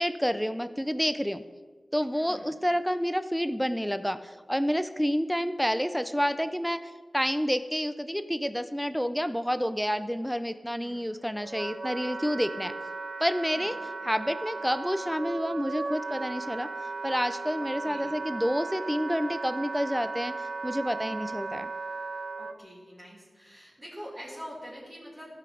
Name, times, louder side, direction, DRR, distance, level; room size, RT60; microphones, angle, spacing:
voice 1, 0.0-1.4 1.9-6.8 7.1-12.7 13.2-13.8 14.0-16.7 17.0-20.3 20.6-21.7, equal, ahead, 11 dB, 0.4 m, -29 dB
voice 2, 2.1-2.5 10.7-11.1 13.5-13.8 17.6-18.2 21.0-21.3 22.4-25.4, equal, 25° right, -6 dB, 2.5 m, -45 dB
Wind instrument woodwind instrument, 10.9-22.6, right 3 dB, 65° right, 0.6 m, -36 dB
13.0 x 5.8 x 5.0 m, 1.4 s
wide cardioid pair, 70°, 0 cm